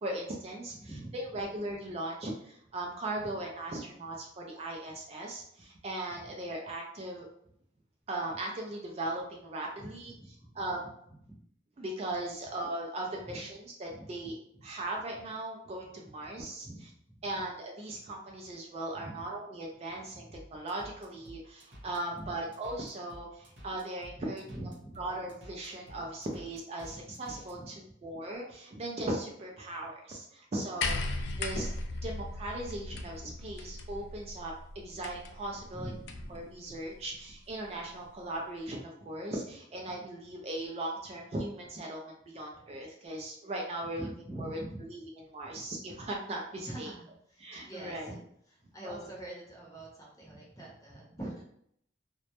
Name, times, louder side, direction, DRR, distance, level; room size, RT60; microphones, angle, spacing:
voice 1, 0.0-0.7 1.1-7.3 8.1-10.1 10.6-10.9 11.8-14.4 14.6-16.7 17.2-24.4 25.0-31.7 32.0-35.9 36.3-44.1 44.4-44.6 44.9-45.0 45.3-46.9 47.4-48.1 48.8-49.1, right 1 dB, 35° right, -1 dB, 0.3 m, -38 dB
voice 2, 0.7-1.1 9.8-10.5 11.3-11.4 14.0-14.1 16.6-16.8 17.1-17.3 19.0-19.2 20.1-20.2 22.1-22.3 24.1-25.0 26.9-27.0 27.5-27.7 33.7-33.8 35.7-36.4 44.0-44.9 46.6-48.2 48.5-51.4, right 1 dB, 20° left, -3 dB, 0.7 m, -44 dB
sound 1, 20.3-27.5, equal, 75° right, 0.8 m, -51 dB
sound 2, 30.8-36.4 37.5-37.6, left 2 dB, 70° left, 0.3 m, -37 dB
2.1 x 2.0 x 2.9 m, 0.70 s
head